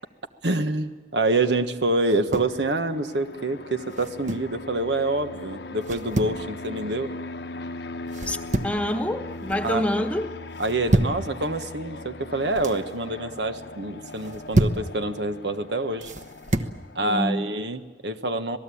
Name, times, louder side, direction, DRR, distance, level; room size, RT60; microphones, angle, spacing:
voice 1, 0.4-7.1 9.6-9.9 10.6-16.1 16.9-18.6, right 2 dB, 75° right, 9 dB, 1.4 m, -26 dB
sound 1, 2.0-2.6 3.9-4.5 5.8-6.4 8.1-8.9 9.2-9.7 10.6-11.2 12.3-12.8 14.1-14.9 16.0-16.8, right 2 dB, 45° right, 1.1 m, -27 dB
Fixed-wing aircraft airplane, 2.3-17.5, left 2 dB, 70° left, 0.9 m, -39 dB
voice 2, 8.6-10.3 17.0-17.5, left 1 dB, 10° left, 6 dB, 1.2 m, -26 dB
27.0 x 19.0 x 8.6 m, 1.3 s
head